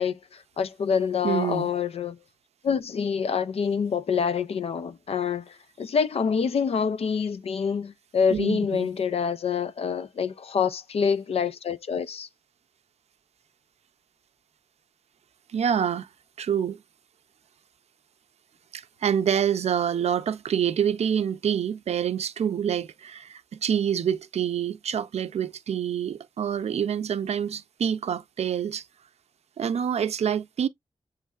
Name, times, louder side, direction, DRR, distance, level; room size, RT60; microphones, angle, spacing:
voice 1, 0.0-2.2 2.6-12.3, left 6 dB, 70° left, 0.5 m, -26 dB
voice 2, 1.2-1.7 8.3-8.9 15.5-16.1 16.4-16.8 18.7-28.8 29.6-30.7, right 8 dB, 85° right, 0.4 m, -27 dB
7.4 x 3.1 x 2.3 m
wide cardioid pair, 150°, 11 cm